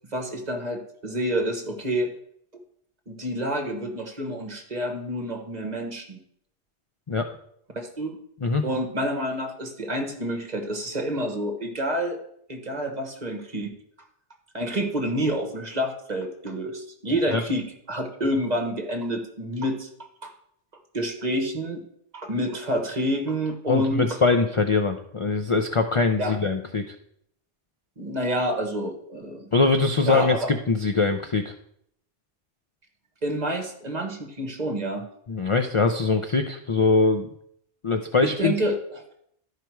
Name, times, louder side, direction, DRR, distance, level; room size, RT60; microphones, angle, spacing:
voice 1, 0.1-2.1 3.1-6.2 7.7-8.2 8.6-12.2 12.5-13.7 14.5-19.9 20.2-20.3 20.9-21.8 22.1-24.2 26.2-26.4 28.0-29.5 30.0-30.5 33.2-35.1 38.2-39.0, equal, 40° right, 4 dB, 1.3 m, -28 dB
voice 2, 23.7-27.0 29.5-31.5 35.3-37.3 37.8-38.5, left 4 dB, 40° left, 6 dB, 0.4 m, -22 dB
12.0 x 5.0 x 4.6 m, 0.71 s
omnidirectional pair, 1.2 m